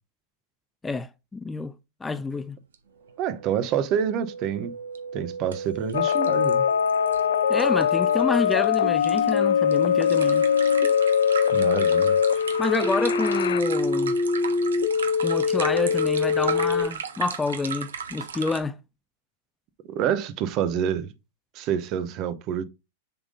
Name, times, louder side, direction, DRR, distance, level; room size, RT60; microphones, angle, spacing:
voice 1, 0.8-1.7 2.0-2.6 7.5-10.5 12.6-14.1 15.2-18.8, left 4 dB, 15° left, 0.4 m, -28 dB
sound 1, 2.7-2.8 3.1-3.2 5.0-5.1 5.5-5.6 5.9-18.6, right 7 dB, 85° right, 0.9 m, -36 dB
voice 2, 3.2-4.7 5.1-6.6 11.5-12.1 19.9-21.1 21.5-22.6, right 9 dB, 45° right, 0.8 m, -27 dB
sound 2, 3.6-16.8, left 4 dB, 60° right, 2.2 m, -27 dB
sound 3, 5.9-13.6, left 8 dB, 75° left, 0.5 m, -22 dB
6.9 x 3.7 x 3.7 m
hypercardioid pair, 115°, 0 cm